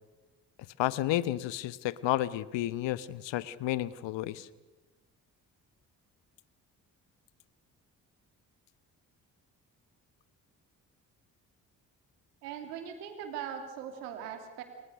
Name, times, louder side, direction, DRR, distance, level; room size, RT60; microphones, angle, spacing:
voice 1, 0.8-4.5, left 14 dB, 70° left, 17 dB, 1.1 m, -31 dB
voice 2, 12.4-14.6, right 8 dB, 85° right, 6 dB, 2.8 m, -40 dB
29.0 x 19.5 x 6.6 m, 1.1 s
hypercardioid pair, 40°, 46 cm